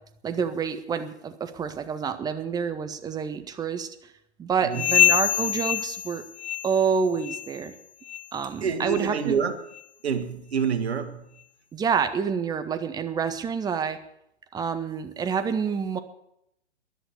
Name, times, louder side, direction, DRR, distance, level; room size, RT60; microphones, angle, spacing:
voice 1, 0.2-3.9 4.4-6.2 6.6-7.7 8.3-9.4 11.7-14.0 14.5-16.0, right 6 dB, 10° right, 10 dB, 1.0 m, -28 dB
voice 2, 4.6-4.9 8.6-9.5 10.0-11.2, right 6 dB, 65° right, 8 dB, 2.1 m, -27 dB
sound 1, 4.7-6.9 7.2-7.6 8.0-8.3 8.9-9.1 9.7-9.8 10.6-10.7, left 10 dB, 70° left, 0.9 m, -25 dB
13.5 x 11.0 x 8.2 m, 0.77 s
figure-of-eight pair, 115°, 35 cm